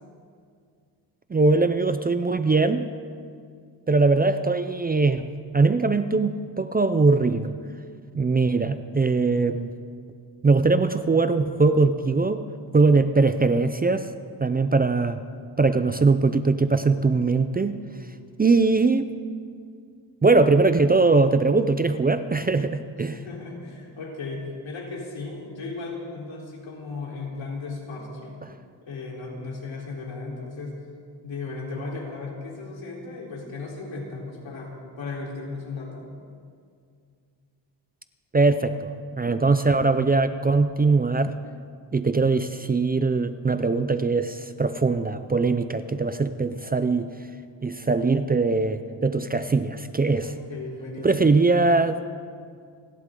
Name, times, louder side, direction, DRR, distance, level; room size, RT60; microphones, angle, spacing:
voice 1, 1.3-2.9 3.9-5.3 5.5-7.5 8.1-9.7 10.4-12.4 12.7-14.1 14.4-15.2 15.6-17.8 18.4-19.1 20.2-23.1 38.3-38.9 39.2-41.3 41.9-47.1 47.6-50.3 51.0-52.0, right 3 dB, 20° right, 10 dB, 0.4 m, -21 dB
voice 2, 23.0-28.4 28.8-30.8 31.2-36.1 50.2-51.3, left 3 dB, 85° left, -3 dB, 3.9 m, -36 dB
30.0 x 11.5 x 3.8 m, 2.2 s
wide cardioid pair, 150°, 44 cm